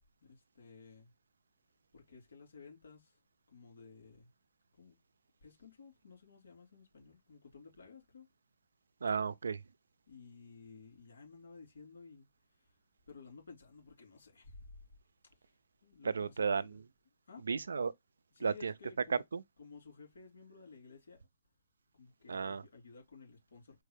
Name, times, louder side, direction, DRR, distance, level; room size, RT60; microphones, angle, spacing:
voice 1, 0.2-1.1 1.9-3.2 3.5-4.3 4.8-5.0 5.4-8.3 10.1-12.3 13.1-14.8 15.8-16.8 17.3-17.5 18.3-19.2 19.6-21.3 21.9-23.8, left 4 dB, 90° left, 3.2 m, -55 dB
voice 2, 9.0-9.6 16.0-16.7 17.5-17.9 18.4-18.7 19.1-19.4 22.3-22.6, right 5 dB, 90° right, 0.3 m, -33 dB
4.5 x 2.2 x 3.2 m
hypercardioid pair, 150°, 0 cm